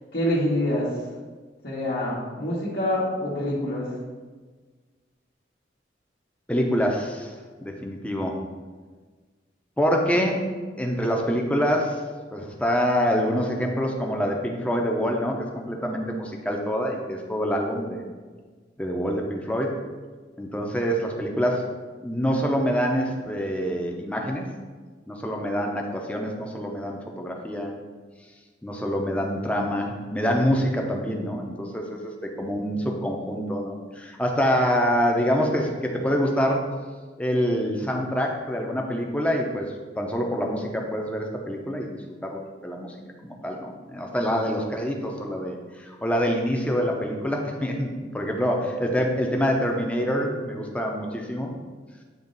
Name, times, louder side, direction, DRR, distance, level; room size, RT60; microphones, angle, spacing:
voice 1, 0.1-0.9 1.6-3.9, left 1 dB, 65° left, -8 dB, 1.3 m, -26 dB
voice 2, 6.5-7.3 7.6-8.4 9.8-10.5 10.8-12.0 12.3-18.0 18.8-19.8 20.4-21.7 22.0-24.5 25.1-27.8 28.6-36.7 37.2-42.9 43.2-51.5, equal, 5° left, 1 dB, 0.7 m, -26 dB
8.8 x 3.2 x 3.9 m, 1.4 s
head